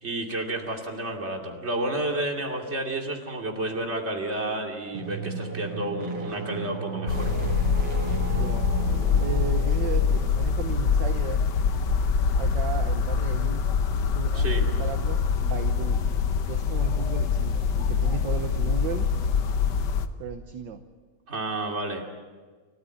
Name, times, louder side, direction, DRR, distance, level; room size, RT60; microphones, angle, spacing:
voice 1, 0.0-7.3 14.3-14.6 21.3-22.1, right 1 dB, 30° right, 1 dB, 2.8 m, -31 dB
sound 1, 4.9-10.5, right 4 dB, 85° right, 3.3 m, -34 dB
sound 2, 7.1-20.1, left 6 dB, 60° left, 1.5 m, -24 dB
voice 2, 8.3-8.8 9.2-11.4 12.4-13.6 14.1-16.0 16.5-19.1 20.2-20.8, right 8 dB, 60° right, 7 dB, 1.5 m, -35 dB
29.0 x 14.0 x 8.4 m, 1.5 s
omnidirectional pair, 2.4 m